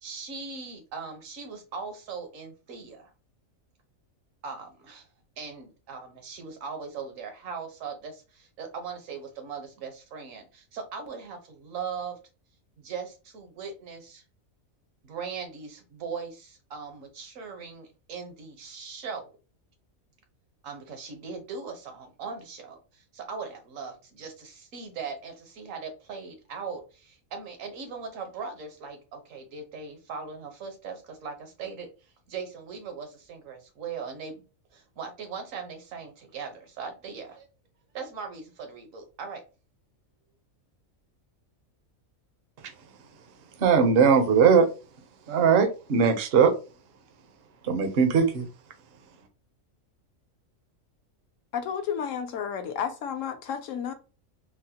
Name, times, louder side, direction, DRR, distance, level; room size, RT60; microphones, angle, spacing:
voice 1, 0.0-3.1 4.4-5.1 5.4-12.2 12.8-14.2 15.0-19.3 20.6-31.9 32.3-34.4 34.7-37.5 37.9-39.4, right 5 dB, 75° right, 1.3 m, -39 dB
voice 2, 43.6-44.7 45.3-46.5 47.6-48.5, right 6 dB, 55° right, 0.7 m, -20 dB
voice 3, 51.5-53.9, left 8 dB, 75° left, 1.0 m, -31 dB
3.9 x 2.1 x 2.8 m
omnidirectional pair, 1.4 m